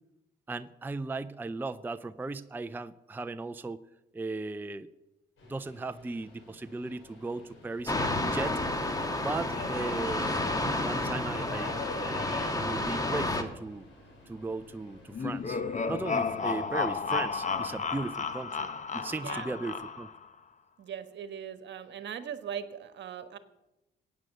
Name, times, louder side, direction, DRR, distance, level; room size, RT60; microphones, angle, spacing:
voice 1, 0.5-3.8 4.1-4.9 5.5-7.9 8.2-8.6 9.2-10.5 10.8-11.7 12.5-13.9 14.3-18.7 18.9-20.1, right 3 dB, 10° right, 11 dB, 0.5 m, -37 dB
Subway metro underground, 5.4-18.2, left 3 dB, 75° left, 5.0 m, -47 dB
sound 1, 7.9-13.4, left 2 dB, 20° left, 1.6 m, -30 dB
sound 2, 15.1-20.2, left 5 dB, 40° left, 1.1 m, -32 dB
voice 2, 19.1-19.5 20.8-23.4, right 8 dB, 65° right, 10 dB, 1.3 m, -40 dB
15.5 x 9.2 x 6.7 m, 0.96 s
cardioid pair, 90°, 20 cm